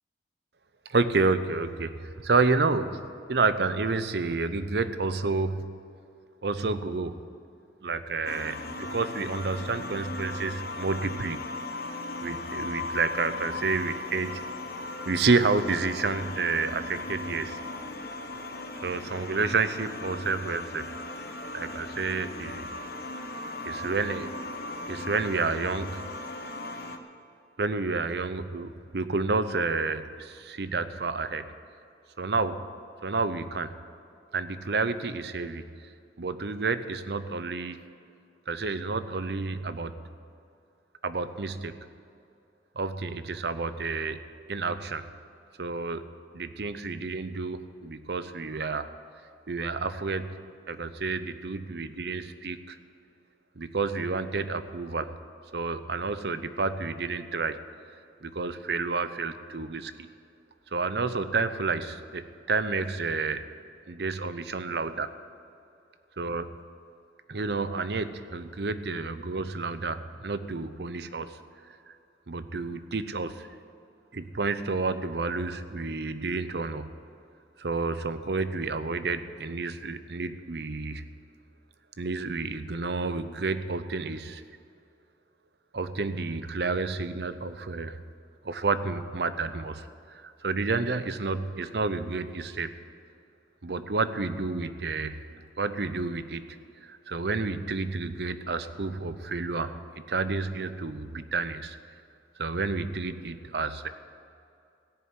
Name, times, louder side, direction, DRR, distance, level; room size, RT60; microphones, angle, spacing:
voice 1, 0.9-5.7 6.4-7.2 7.8-11.4 12.2-14.4 15.1-17.6 18.8-20.9 21.5-22.7 23.6-24.3 24.9-26.0 27.6-31.5 32.2-32.6 33.0-33.7 34.3-35.6 36.2-37.8 38.5-40.0 41.0-41.7 42.8-44.2 44.5-45.0 45.6-46.1 46.3-48.9 49.5-50.3 50.7-52.8 53.6-55.1 55.5-57.6 58.2-60.1 60.7-63.4 63.9-65.1 66.2-66.6 67.3-71.4 71.9-72.0 72.3-73.5 74.1-76.9 77.6-81.0 82.0-84.4 85.7-88.0 88.4-89.9 90.2-92.7 93.6-95.2 95.6-96.4 96.8-99.8 100.1-101.8 102.4-103.9, right 4 dB, 65° right, 12 dB, 0.7 m, -30 dB
sound 1, 8.2-27.0, left 2 dB, 55° left, 1.0 m, -37 dB
16.5 x 7.0 x 9.6 m, 2.5 s
head